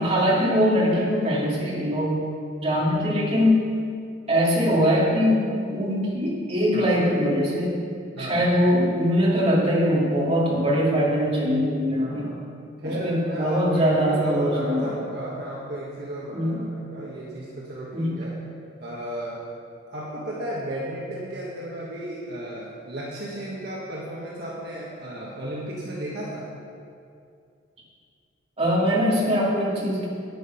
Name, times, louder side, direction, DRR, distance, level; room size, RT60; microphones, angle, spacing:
voice 1, 0.0-2.1 2.6-3.6 4.3-7.8 8.2-12.3 12.8-14.9 16.3-16.6 17.9-18.1 28.6-30.1, equal, 30° right, -5 dB, 2.4 m, -22 dB
voice 2, 8.1-8.5 12.0-12.4 12.8-18.4 18.8-19.5 19.9-26.5, right 1 dB, 55° right, -5 dB, 1.5 m, -34 dB
9.5 x 9.2 x 5.9 m, 2.4 s
head